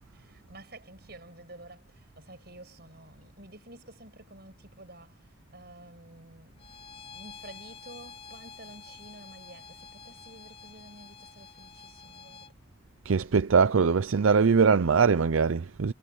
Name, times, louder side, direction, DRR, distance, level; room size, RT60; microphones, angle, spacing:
voice 1, 0.1-12.5, right 2 dB, 50° right, 6.3 m, -51 dB
Bowed string instrument, 6.6-12.5, left 6 dB, 30° left, 6.8 m, -49 dB
voice 2, 13.0-15.9, right 5 dB, 85° right, 0.5 m, -22 dB
head